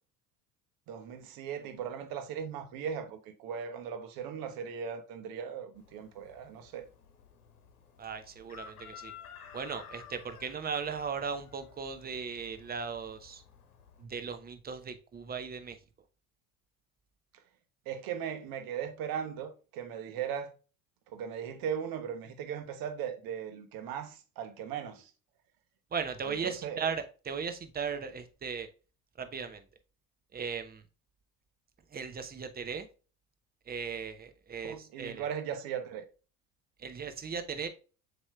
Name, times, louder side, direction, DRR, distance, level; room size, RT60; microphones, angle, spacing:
voice 1, 0.9-6.9 17.9-20.5 21.1-25.1 26.4-26.8 34.6-36.0, right 8 dB, 50° right, 1.0 m, -38 dB
Chicken rooster, 5.7-14.0, left 8 dB, 80° left, 1.0 m, -53 dB
voice 2, 8.0-9.1 9.5-13.4 14.0-15.8 25.9-28.7 29.2-29.6 30.3-30.8 31.9-32.9 33.7-35.3 36.8-37.7, right 6 dB, 20° right, 0.8 m, -37 dB
7.1 x 3.0 x 2.3 m
hypercardioid pair, 70°, 44 cm